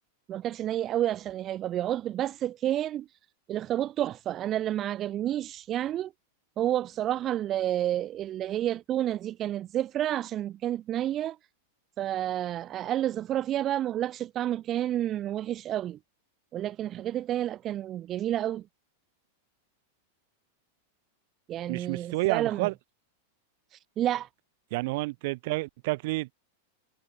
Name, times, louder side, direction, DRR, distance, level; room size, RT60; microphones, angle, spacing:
voice 1, 0.3-3.1 3.5-6.1 6.6-11.4 12.0-16.0 16.5-18.6 21.5-22.7 23.7-24.3, right 12 dB, 30° right, 0.7 m, -30 dB
voice 2, 21.7-22.7 24.7-26.3, right 22 dB, 55° right, 2.9 m, -29 dB
supercardioid pair, 145°, 0 cm